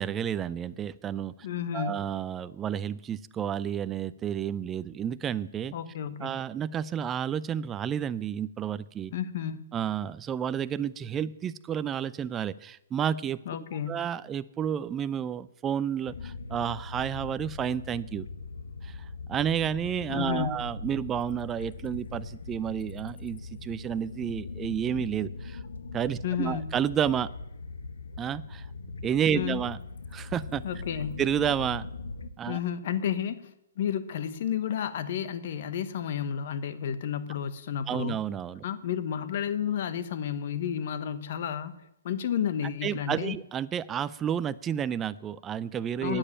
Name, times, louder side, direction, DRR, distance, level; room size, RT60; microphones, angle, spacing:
voice 1, 0.0-1.3 1.7-5.7 6.2-9.1 9.7-13.4 13.9-18.3 18.8-25.6 25.9-27.3 28.2-28.7 29.0-29.8 30.1-30.6 31.2-31.9 32.4-32.6 37.9-38.6 42.8-46.2, right 9 dB, 15° right, 16 dB, 0.4 m, -31 dB
voice 2, 1.4-2.0 5.7-6.4 9.1-9.6 13.5-14.0 20.1-20.6 26.2-26.7 29.3-29.7 30.6-31.2 32.5-38.2 38.6-41.7 42.0-43.4 46.0-46.2, left 9 dB, 50° left, 13 dB, 1.1 m, -31 dB
sound 1, 16.1-32.3, left 3 dB, 85° left, 1.0 m, -40 dB
10.0 x 8.9 x 8.7 m, 0.84 s
hypercardioid pair, 155°, 0 cm